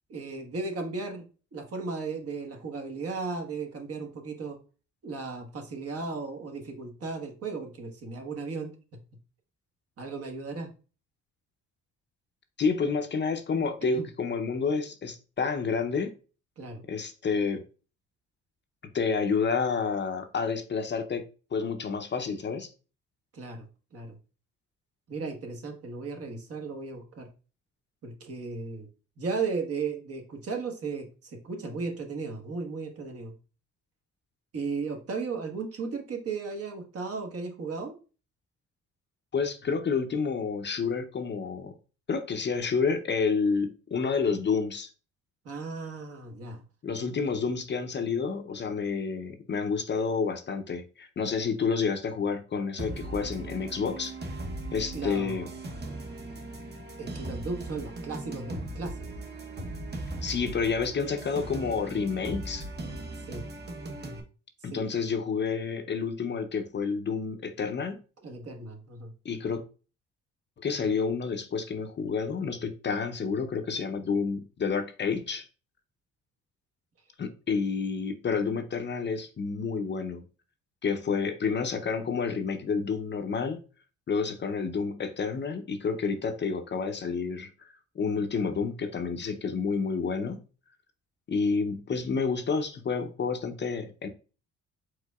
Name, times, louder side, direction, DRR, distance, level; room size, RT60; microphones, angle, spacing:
voice 1, 0.1-4.6 5.0-8.7 10.0-10.7 13.6-14.1 16.6-16.8 23.3-24.2 25.1-27.3 28.0-28.9 29.2-33.3 34.5-37.9 45.4-46.6 54.9-55.5 57.0-59.1 63.3-63.5 64.7-64.9 68.2-69.1, right 4 dB, 50° right, 1.2 m, -35 dB
voice 2, 12.6-16.1 16.9-17.6 18.9-21.2 21.5-22.7 39.3-41.7 42.1-44.9 46.8-54.1 54.7-55.5 60.2-62.7 64.6-68.0 69.2-69.6 70.6-75.5 77.2-80.2 80.8-83.6 84.1-90.4 91.3-94.1, left 5 dB, 35° left, 0.6 m, -29 dB
sound 1, 52.8-64.2, right 2 dB, 35° right, 0.9 m, -38 dB
4.8 x 3.8 x 2.3 m
cardioid pair, 90°, 30 cm